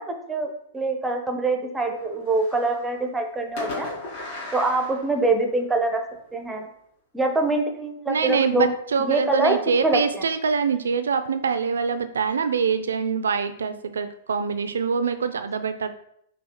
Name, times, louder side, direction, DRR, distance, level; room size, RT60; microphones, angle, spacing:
voice 1, 0.0-3.9 4.5-6.0 6.3-6.7 7.1-8.7 9.0-10.3, right 2 dB, 10° right, 4 dB, 0.6 m, -24 dB
Fireworks, 2.0-2.9 3.6-5.8, left 2 dB, 45° left, 0.9 m, -36 dB
voice 2, 8.1-15.9, right 5 dB, 75° right, 9 dB, 0.3 m, -24 dB
5.6 x 2.4 x 2.9 m, 0.72 s
figure-of-eight pair, 105°, 0 cm